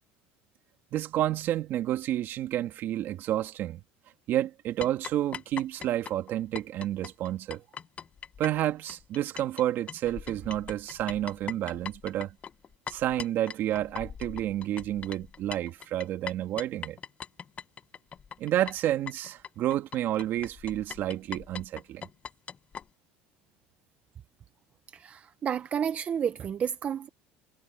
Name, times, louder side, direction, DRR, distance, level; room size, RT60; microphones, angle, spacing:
voice 1, 0.9-3.8 4.3-7.6 8.4-12.4 12.9-17.0 18.4-22.1, right 13 dB, 50° right, 2.3 m, -30 dB
sound 1, 4.8-9.6 9.9-22.8, left 7 dB, 25° left, 1.0 m, -41 dB
voice 2, 24.9-27.1, right 8 dB, 30° right, 0.7 m, -31 dB
cardioid pair, 135°, 5 cm